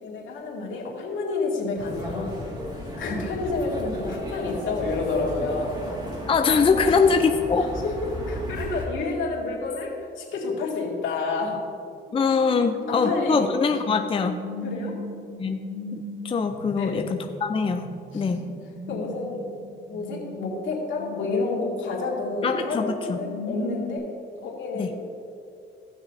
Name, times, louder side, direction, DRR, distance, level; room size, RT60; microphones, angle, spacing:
voice 1, 0.0-2.4 3.0-5.8 6.8-7.1 7.6-11.6 12.9-13.8 14.6-15.0 16.7-17.0 18.1-18.4 18.9-19.4 19.9-24.0 24.4-24.9, left 3 dB, 75° left, -3 dB, 2.2 m, -29 dB
sound 1, 1.8-8.9, equal, 20° right, 2.0 m, -34 dB
voice 2, 6.3-7.6 12.1-14.4 15.4-15.6 15.9-18.5 22.4-23.2 24.7-24.9, left 5 dB, 25° left, 6 dB, 0.5 m, -23 dB
sound 2, 11.8-24.0, left 1 dB, 90° right, 1.9 m, -38 dB
16.0 x 6.1 x 2.7 m, 2.5 s
cardioid pair, 90°, 20 cm